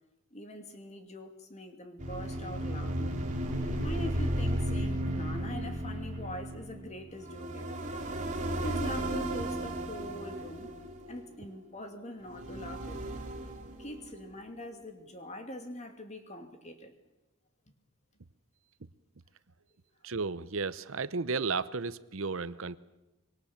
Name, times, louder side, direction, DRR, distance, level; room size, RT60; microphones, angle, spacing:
voice 1, 0.3-3.2 3.8-7.8 8.6-10.7 11.1-13.3 13.8-16.9, left 1 dB, 30° left, 6 dB, 2.5 m, -43 dB
sound 1, 2.0-11.5 12.2-14.3, right 1 dB, 35° right, 3.0 m, -34 dB
voice 2, 20.0-22.8, right 4 dB, 70° right, 15 dB, 0.8 m, -33 dB
25.0 x 22.5 x 7.3 m, 0.96 s
head